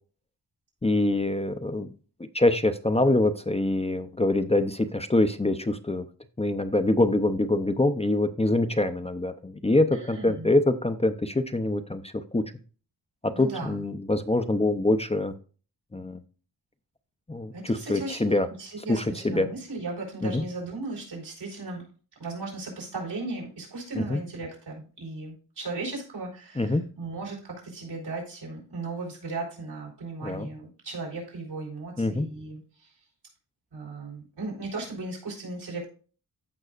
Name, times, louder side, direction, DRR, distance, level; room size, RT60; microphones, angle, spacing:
voice 1, 0.8-1.9 2.3-6.1 6.4-12.4 13.2-15.3 15.9-16.2 17.3-18.5 18.9-19.5 20.2-20.4 24.0-24.2 26.6-26.8 30.2-30.5 32.0-32.3, left 2 dB, 15° left, 9 dB, 0.6 m, -25 dB
voice 2, 9.9-10.5 13.3-13.8 17.5-21.9 22.2-32.9 33.7-35.8, right 3 dB, 90° right, -2 dB, 4.5 m, -36 dB
14.5 x 5.4 x 2.4 m, 0.38 s
wide cardioid pair, 110°, 39 cm